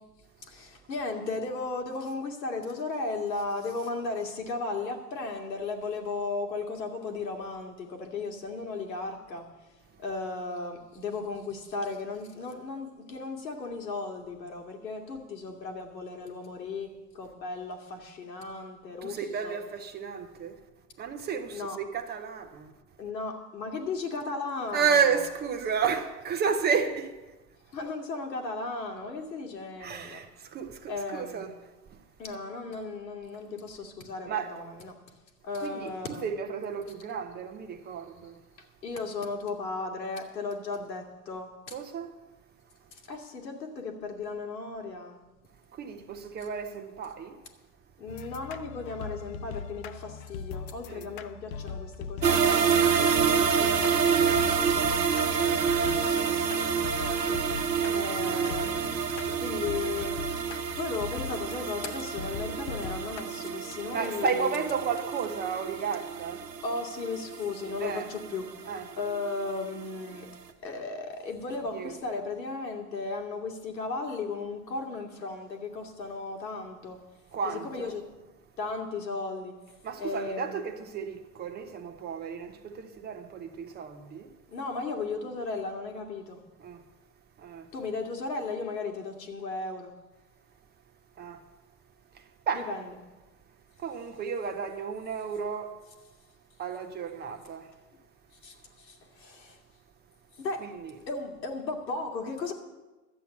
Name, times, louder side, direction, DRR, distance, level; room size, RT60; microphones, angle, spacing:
voice 1, 0.4-9.5 10.0-16.9 17.1-19.6 21.5-21.8 23.0-25.2 27.7-30.2 30.9-31.5 32.2-34.9 35.4-36.3 38.8-41.7 42.9-45.2 48.0-54.9 55.3-57.4 57.9-58.9 59.4-60.4 60.8-64.7 66.6-68.4 69.0-70.3 70.6-77.0 77.4-78.0 78.6-79.5 80.0-80.7 84.5-86.4 87.7-89.9 92.5-92.8 98.4-99.6 100.4-100.7 101.1-102.5, left 3 dB, 85° left, 2.3 m, -36 dB
voice 2, 19.0-20.6 21.0-22.7 24.7-27.2 29.8-31.5 31.9-32.0 34.3-34.5 35.6-38.4 41.7-42.1 45.7-47.4 50.9-51.1 57.8-58.1 63.9-66.5 67.8-68.1 68.7-68.9 71.7-71.9 77.3-77.9 79.8-84.3 86.6-86.8 87.4-87.7 91.2-91.4 92.1-92.7 93.8-95.7 96.6-97.7 100.6-100.9, right 6 dB, 20° right, 0.7 m, -32 dB
sound 1, 48.1-63.2, left 6 dB, 35° left, 0.4 m, -40 dB
sound 2, 52.2-69.3 69.6-69.7 70.1-70.2, right 6 dB, 85° right, 1.2 m, -28 dB
12.0 x 8.2 x 7.1 m
hypercardioid pair, 115°, 49 cm